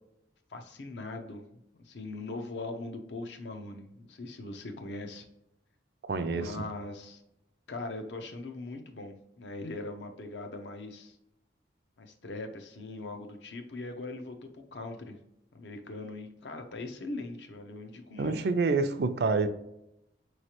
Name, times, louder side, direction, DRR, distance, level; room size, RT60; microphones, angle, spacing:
voice 1, 0.5-1.5 1.8-5.3 6.3-7.2 7.7-11.2 12.0-15.2 15.5-18.4, left 2 dB, 75° left, 5 dB, 0.6 m, -41 dB
voice 2, 6.0-6.6 18.2-19.5, right 4 dB, 60° right, 9 dB, 0.4 m, -27 dB
4.8 x 3.1 x 2.9 m, 0.84 s
head